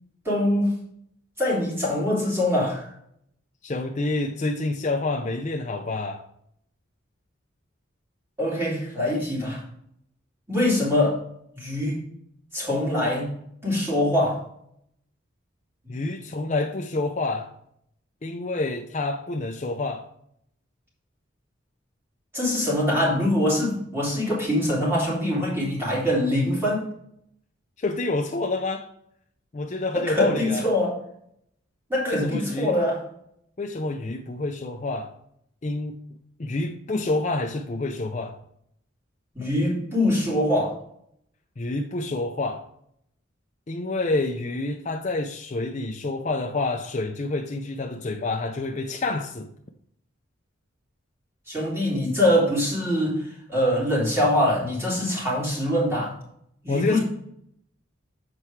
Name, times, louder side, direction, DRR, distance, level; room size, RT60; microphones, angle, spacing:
voice 1, 0.2-0.7 1.4-2.9 8.4-9.6 10.5-11.2 11.5-12.0 12.5-13.3 13.6-14.4 15.9-16.0 22.3-26.9 29.9-31.0 31.9-33.0 39.3-40.7 51.5-56.1 56.6-57.0, left 1 dB, 10° right, 3.0 m, -23 dB
voice 2, 3.6-6.2 15.9-17.5 18.2-20.1 27.8-28.9 29.5-30.6 32.1-32.8 33.6-35.1 35.6-36.0 36.4-38.4 41.6-42.6 43.7-49.5 56.7-57.0, left 2 dB, 35° left, 0.5 m, -28 dB
7.5 x 4.4 x 4.7 m
head